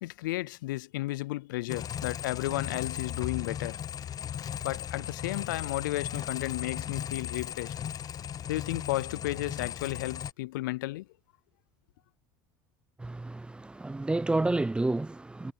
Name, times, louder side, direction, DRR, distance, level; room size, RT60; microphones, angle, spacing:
voice 1, 0.0-3.8 4.6-7.8 8.5-11.1, left 18 dB, 85° left, 0.4 m, -33 dB
sound 1, 1.7-10.3, left 9 dB, 35° left, 0.7 m, -37 dB
voice 2, 13.0-15.5, right 2 dB, 10° right, 0.5 m, -30 dB
supercardioid pair, 90°, 10 cm